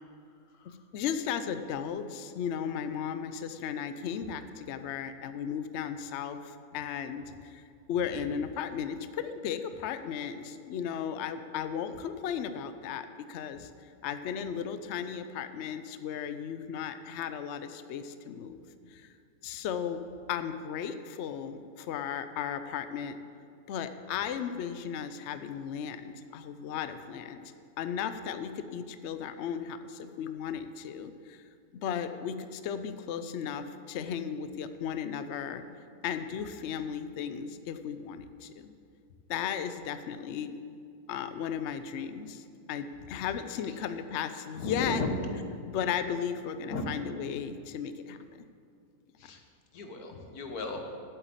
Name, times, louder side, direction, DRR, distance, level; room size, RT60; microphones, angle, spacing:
voice 1, 0.7-7.6 7.9-13.7 14.0-18.6 18.9-19.1 19.4-20.0 20.3-23.2 23.7-27.5 27.8-31.4 31.7-35.6 36.0-38.7 39.3-40.6 41.1-45.0 45.7-48.2, left 8 dB, 65° left, 10 dB, 0.7 m, -35 dB
voice 2, 44.5-45.2 46.7-46.8 49.2-49.4 49.7-50.8, left 2 dB, 85° left, 4 dB, 1.6 m, -35 dB
8.2 x 8.1 x 7.9 m, 2.3 s
omnidirectional pair, 1.6 m